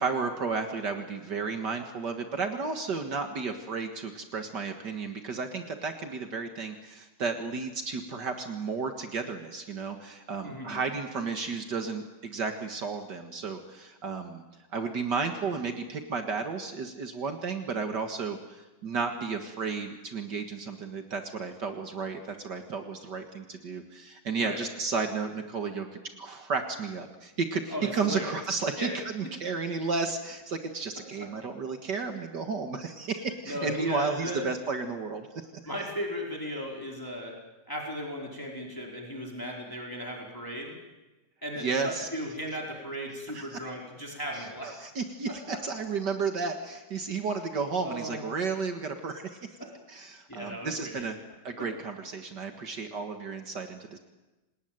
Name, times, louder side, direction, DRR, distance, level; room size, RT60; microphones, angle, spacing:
voice 1, 0.0-14.4 14.7-35.5 41.6-42.1 43.3-43.6 44.3-49.4 49.9-51.2 51.4-54.0, right 4 dB, 65° right, 5 dB, 2.3 m, -33 dB
voice 2, 10.4-10.8 24.3-24.6 27.7-28.4 28.8-28.9 29.2-29.3 33.4-34.4 35.6-37.3 37.7-40.7 41.4-44.8 47.8-48.2 49.6-49.7 50.3-51.0, equal, 10° left, -1 dB, 4.8 m, -36 dB
28.0 x 19.0 x 9.3 m, 1.1 s
omnidirectional pair, 2.0 m